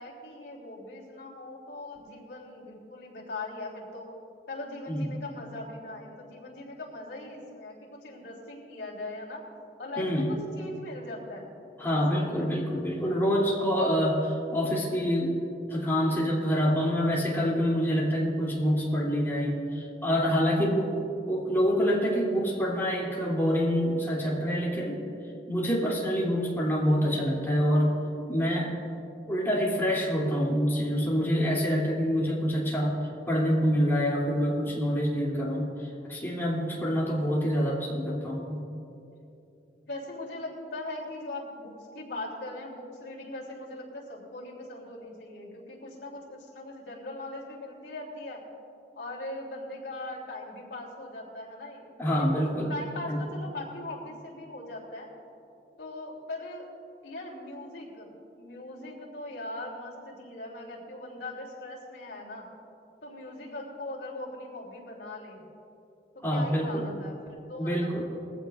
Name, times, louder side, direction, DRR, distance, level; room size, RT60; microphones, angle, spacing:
voice 1, 0.0-4.1 4.5-9.4 9.8-11.5 11.8-12.5 37.1-37.2 39.9-48.4 49.0-55.1 55.8-56.7 57.0-58.1 58.3-62.5 63.0-65.4 66.1-68.0, left 2 dB, 70° left, -3 dB, 3.2 m, -40 dB
voice 2, 10.0-10.4 11.8-15.4 15.7-25.0 25.5-28.0 28.3-28.8 29.3-33.0 33.3-38.6 52.0-52.7 53.1-53.2 66.2-66.9 67.6-68.0, equal, 15° left, -5 dB, 3.0 m, -26 dB
21.0 x 15.0 x 2.6 m, 2.8 s
head